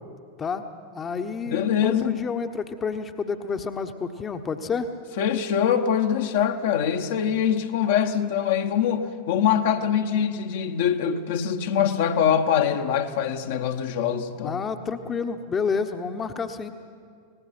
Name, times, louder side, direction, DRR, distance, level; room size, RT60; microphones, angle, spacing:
voice 1, 0.9-4.9 14.4-16.7, left 5 dB, 20° left, 7 dB, 1.0 m, -29 dB
voice 2, 1.5-2.2 5.2-14.6, left 8 dB, 55° left, 5 dB, 1.1 m, -23 dB
25.0 x 19.0 x 6.1 m, 2.1 s
figure-of-eight pair, 90°, 0 cm